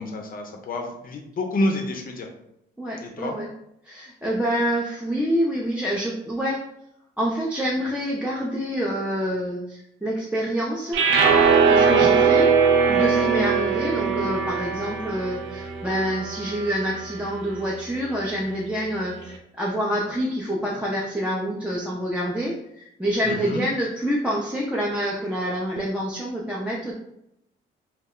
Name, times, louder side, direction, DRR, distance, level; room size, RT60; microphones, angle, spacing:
voice 1, 0.0-2.3 3.0-3.3 11.7-12.1 23.2-23.6, left 1 dB, 45° left, 3 dB, 0.5 m, -29 dB
voice 2, 2.8-3.5 3.9-6.6 7.2-11.0 11.7-12.5 12.9-26.9, equal, 5° right, -5 dB, 0.4 m, -27 dB
sound 1, 10.9-17.2, right 5 dB, 85° right, 0.4 m, -20 dB
2.3 x 2.1 x 3.6 m, 0.80 s
cardioid pair, 90°, 20 cm